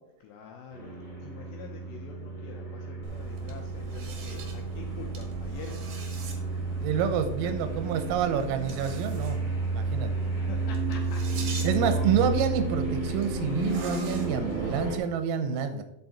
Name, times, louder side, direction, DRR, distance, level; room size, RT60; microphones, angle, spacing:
voice 1, 0.2-5.9 7.7-8.0 9.8-9.9 10.2-12.2, left 6 dB, 80° left, 2 dB, 2.6 m, -46 dB
sound 1, 0.7-15.0, right 3 dB, 20° left, 2.2 m, -32 dB
sound 2, 3.0-15.0, right 4 dB, 65° right, 2.1 m, -41 dB
voice 2, 6.8-9.4 9.7-10.1 11.6-15.8, right 7 dB, 90° right, 9 dB, 3.6 m, -28 dB
9.7 x 6.8 x 4.2 m, 0.85 s
omnidirectional pair, 5.9 m